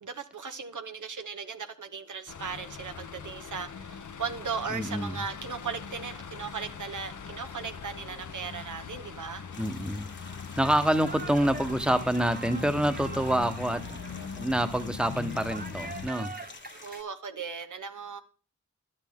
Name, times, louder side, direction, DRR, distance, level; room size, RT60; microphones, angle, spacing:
voice 1, 0.0-9.4 16.8-18.2, right 5 dB, 75° right, 0.9 m, -37 dB
sound 1, 2.3-16.1, left 6 dB, 75° left, 0.8 m, -41 dB
voice 2, 4.7-5.2 9.6-10.1 10.6-13.8 14.4-16.3, right 1 dB, 5° right, 1.0 m, -27 dB
sound 2, 9.5-17.0, left 3 dB, 35° left, 1.1 m, -49 dB
sound 3, 10.6-17.0, right 3 dB, 30° right, 0.8 m, -44 dB
11.5 x 9.9 x 3.6 m
cardioid pair, 40°, 30 cm